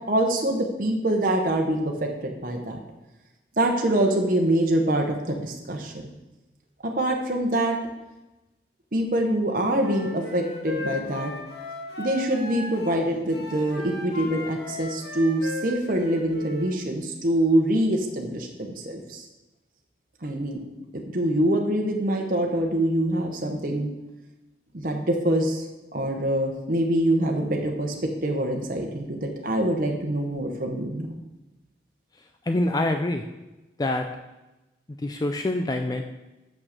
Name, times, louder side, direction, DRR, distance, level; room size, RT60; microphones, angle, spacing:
voice 1, 0.1-2.8 3.6-6.0 6.8-7.8 8.9-11.3 12.0-19.3 20.2-20.6 21.1-23.9 24.7-25.6 25.9-31.1, right 1 dB, 50° right, 1 dB, 1.0 m, -25 dB
Wind instrument woodwind instrument, 9.8-13.0 13.3-16.7, left 2 dB, 70° left, 2.1 m, -36 dB
voice 2, 32.4-33.3 33.8-34.1 35.0-36.0, left 1 dB, 20° left, 5 dB, 0.4 m, -25 dB
6.4 x 6.1 x 6.5 m, 1.0 s
head